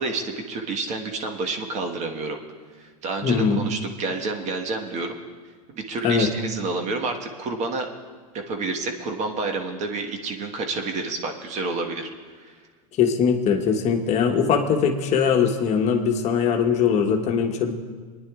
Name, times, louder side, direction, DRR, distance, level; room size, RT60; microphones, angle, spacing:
voice 1, 0.0-2.4 2.8-5.2 5.7-7.9 8.5-12.1 12.4-12.5, right 3 dB, 40° right, 4 dB, 1.4 m, -29 dB
voice 2, 3.2-3.6 6.0-6.3 13.0-17.7, left 6 dB, 40° left, 4 dB, 1.3 m, -21 dB
26.5 x 10.0 x 2.4 m, 1.5 s
hypercardioid pair, 95°, 19 cm